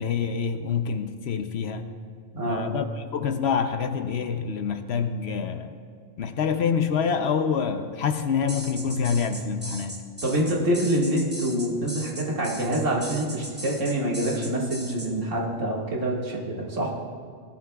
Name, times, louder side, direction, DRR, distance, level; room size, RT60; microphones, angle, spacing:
voice 1, 0.0-1.8 2.5-2.9 3.1-5.7 6.2-10.0, left 6 dB, 65° left, 8 dB, 0.9 m, -26 dB
voice 2, 2.3-2.7 10.2-16.9, right 1 dB, 80° right, -3 dB, 2.2 m, -26 dB
sound 1, 8.5-15.1, right 1 dB, 10° right, 0.9 m, -38 dB
18.0 x 11.0 x 2.3 m, 2.1 s
omnidirectional pair, 1.3 m